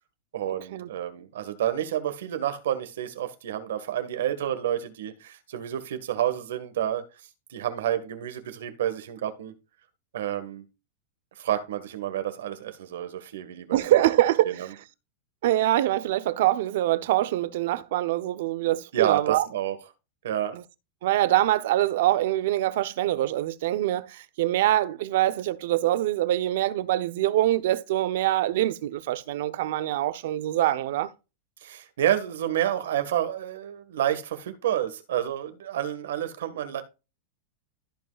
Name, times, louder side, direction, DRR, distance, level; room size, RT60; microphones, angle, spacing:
voice 1, 0.3-7.0 7.5-9.5 10.1-10.6 11.4-13.8 14.4-14.6 18.9-19.8 20.2-20.6 31.6-36.8, right 11 dB, 85° right, 1.6 m, -29 dB
voice 2, 13.7-14.6 15.4-19.5 20.5-20.6 21.0-31.1, right 14 dB, 65° right, 0.7 m, -24 dB
15.0 x 5.4 x 2.4 m
supercardioid pair, 150°, 0 cm